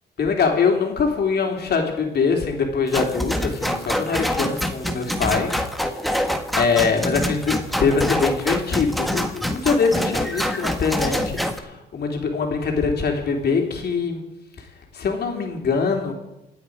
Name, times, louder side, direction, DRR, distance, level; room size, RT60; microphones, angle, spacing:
voice 1, 0.2-5.6 6.1-14.2 14.9-16.1, left 5 dB, 55° left, 2 dB, 3.5 m, -23 dB
sound 1, 2.9-11.6, equal, ahead, 1.6 m, -25 dB
27.0 x 9.3 x 5.0 m, 0.93 s
cardioid pair, 90°, 20 cm